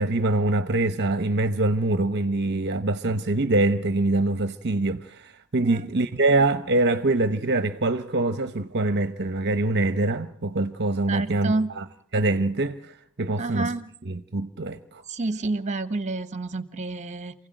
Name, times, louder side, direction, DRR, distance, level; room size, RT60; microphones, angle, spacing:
voice 1, 0.0-11.8 12.1-13.7 14.0-15.0, right 2 dB, 50° right, 1.0 m, -24 dB
voice 2, 11.1-11.7 13.4-13.9 15.1-17.3, right 3 dB, 30° right, 1.3 m, -29 dB
28.0 x 16.5 x 9.1 m
head